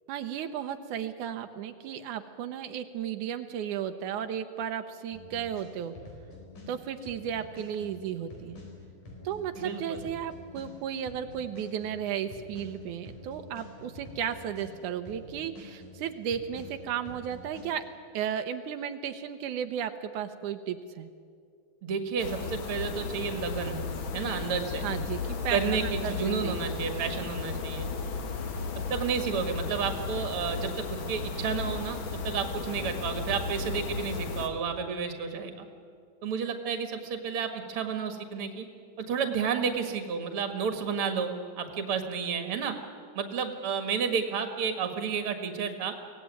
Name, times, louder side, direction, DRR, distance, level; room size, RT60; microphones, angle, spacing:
voice 1, 0.1-5.9 6.7-8.6 9.2-17.8 18.1-21.1 24.8-26.2 26.4-26.7, right 9 dB, 85° right, 7 dB, 2.4 m, -34 dB
sound 1, 5.1-6.7 7.0-10.7 11.0-14.7 15.0-17.6, left 2 dB, 85° left, 6.1 m, -47 dB
voice 2, 9.6-10.1 21.8-23.9 24.1-24.8 25.5-27.9 28.9-35.7 36.2-38.7 39.0-42.7 43.1-45.9, right 6 dB, 50° right, 7 dB, 2.4 m, -31 dB
sound 2, 22.2-34.5, left 4 dB, 50° left, 1.9 m, -35 dB
23.5 x 17.5 x 9.4 m, 2.2 s
omnidirectional pair, 3.5 m